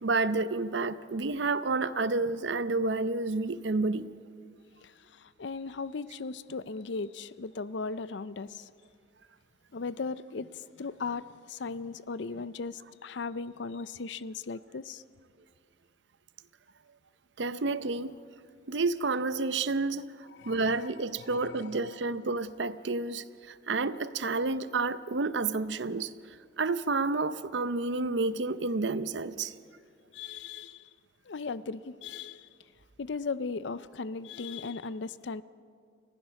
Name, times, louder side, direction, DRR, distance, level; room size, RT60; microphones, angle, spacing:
voice 1, 0.0-4.1 17.4-18.1 18.7-26.1 26.6-29.5, right 3 dB, 65° right, 0.7 m, -30 dB
voice 2, 4.8-8.7 9.7-15.0 20.4-20.9 21.2-21.8 30.1-30.9 31.3-32.5 33.0-35.4, left 4 dB, 65° left, 0.5 m, -37 dB
29.5 x 15.0 x 5.8 m
head